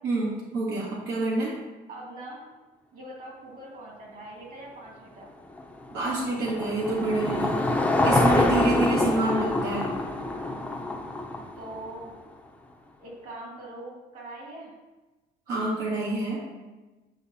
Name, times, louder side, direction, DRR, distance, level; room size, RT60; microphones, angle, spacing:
voice 1, 0.0-1.5 5.9-7.6 8.0-9.9 15.5-16.4, right 2 dB, 80° right, -5 dB, 1.6 m, -27 dB
voice 2, 1.9-2.5 2.9-5.3 8.9-9.5 11.6-12.1 13.0-14.7, right 1 dB, 55° right, -3 dB, 2.2 m, -41 dB
Car passing by / Engine, 5.5-12.0, left 2 dB, 10° left, 0.7 m, -26 dB
8.8 x 4.5 x 2.7 m, 1.2 s
cardioid pair, 110°, 17 cm